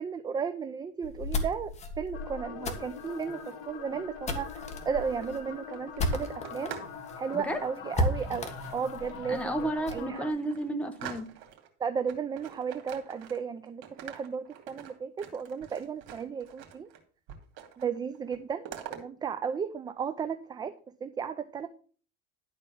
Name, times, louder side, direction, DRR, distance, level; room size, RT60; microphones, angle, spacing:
voice 1, 0.0-6.7 7.2-9.5 9.9-10.3 11.8-16.9 17.8-20.7 21.0-21.7, right 6 dB, 15° right, 11 dB, 0.4 m, -34 dB
sound 1, 1.0-6.7 7.1-7.2 7.4-7.5 7.9-10.1, left 1 dB, 25° left, 1.6 m, -34 dB
sound 2, 2.1-10.3, left 6 dB, 50° left, 2.5 m, -43 dB
sound 3, 5.0-7.0 7.3-7.7 8.5-9.3 9.7-9.8 10.1-11.7 12.1-13.6 13.8-17.0 17.3-17.9 18.1-19.0, right 10 dB, 65° right, 2.6 m, -46 dB
voice 2, 7.3-7.6 9.3-11.3, right 1 dB, 5° left, 6 dB, 1.2 m, -32 dB
12.0 x 4.3 x 7.1 m, 0.41 s
cardioid pair, 150°, 29 cm